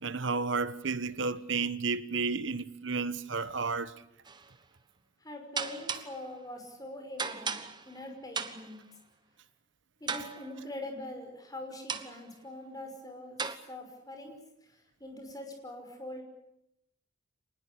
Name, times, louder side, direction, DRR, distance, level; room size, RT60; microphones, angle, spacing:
voice 1, 0.0-3.9, right 4 dB, 65° right, 1.2 m, -32 dB
sound 1, 4.3-4.5 5.6-6.3 7.2-8.0 8.3-8.8 10.1-10.6 11.9-12.3 13.4-13.6, right 5 dB, 20° right, 1.2 m, -36 dB
voice 2, 5.2-7.6 7.8-8.8 10.0-13.4 13.7-16.2, left 1 dB, 20° left, 5.7 m, -43 dB
26.0 x 20.0 x 8.5 m
head